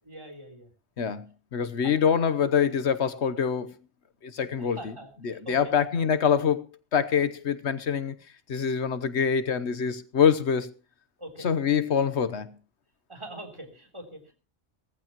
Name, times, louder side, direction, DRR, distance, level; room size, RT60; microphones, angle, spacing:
voice 1, 0.0-0.7 1.0-1.1 1.6-1.9 4.6-5.7 11.2-11.5 13.1-14.3, right 1 dB, 25° right, 3.6 m, -43 dB
voice 2, 1.5-3.7 4.2-4.9 5.2-6.7 6.9-8.1 8.5-10.7 11.4-12.5, left 7 dB, 85° left, 1.3 m, -25 dB
19.0 x 15.0 x 3.0 m
omnidirectional pair, 1.1 m